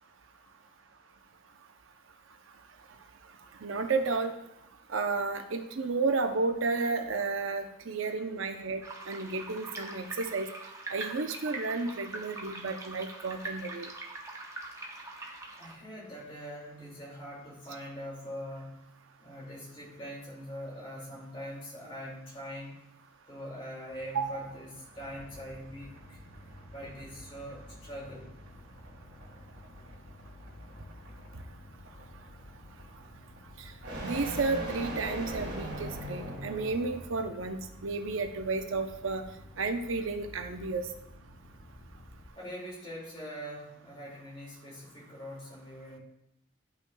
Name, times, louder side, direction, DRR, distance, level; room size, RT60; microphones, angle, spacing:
voice 1, 3.6-4.3 4.9-10.5 10.9-13.9 24.1-24.3 33.6-33.7 34.0-39.3 39.6-40.9, right 3 dB, 80° right, 6 dB, 0.6 m, -32 dB
sound 1, 8.8-15.7, right 2 dB, 15° right, 0.8 m, -43 dB
voice 2, 15.5-18.9 19.2-22.8 23.3-26.2 26.7-28.4 42.3-46.0, equal, 25° left, -4 dB, 2.2 m, -43 dB
sound 2, 23.9-37.4, right 1 dB, 60° right, 2.4 m, -43 dB
sound 3, 25.0-42.3, left 1 dB, 55° left, 0.8 m, -51 dB
10.5 x 5.7 x 2.2 m, 0.81 s
head